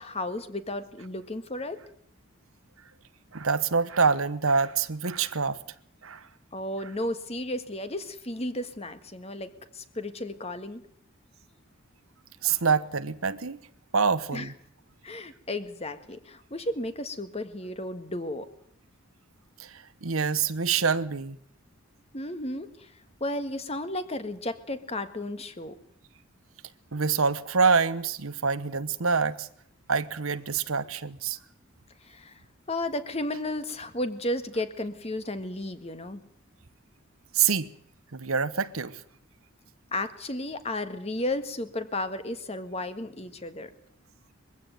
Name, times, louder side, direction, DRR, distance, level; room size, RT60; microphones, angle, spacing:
voice 1, 0.0-1.8 6.5-9.5 9.7-10.8 14.3-14.5 15.0-18.5 22.1-22.9 23.2-25.7 32.0-32.3 32.7-36.2 39.9-43.7, left 1 dB, 30° left, 1.6 m, -33 dB
voice 2, 3.3-5.6 6.0-6.2 12.4-13.6 13.9-14.5 19.6-21.4 26.9-29.5 29.9-31.4 37.3-37.7 38.1-39.0, right 5 dB, 85° right, 1.1 m, -26 dB
22.0 x 15.5 x 9.3 m
head